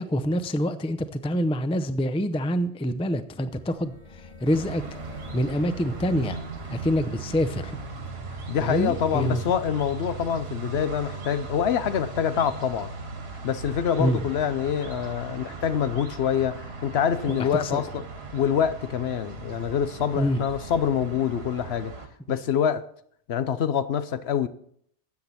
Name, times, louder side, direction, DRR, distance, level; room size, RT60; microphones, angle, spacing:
voice 1, 0.0-4.8 5.3-6.4 6.7-7.8 8.6-9.4 14.0-14.2 17.3-17.8 20.2-20.4, equal, 10° left, 0.3 m, -26 dB
sound 1, 3.2-9.9, left 2 dB, 40° left, 1.5 m, -48 dB
sound 2, 4.5-22.1, right 4 dB, 60° right, 1.5 m, -38 dB
voice 2, 8.5-12.9 13.4-18.0 18.3-21.9 22.3-22.8 23.3-24.5, left 8 dB, 65° left, 0.9 m, -26 dB
13.0 x 8.5 x 4.2 m
omnidirectional pair, 1.2 m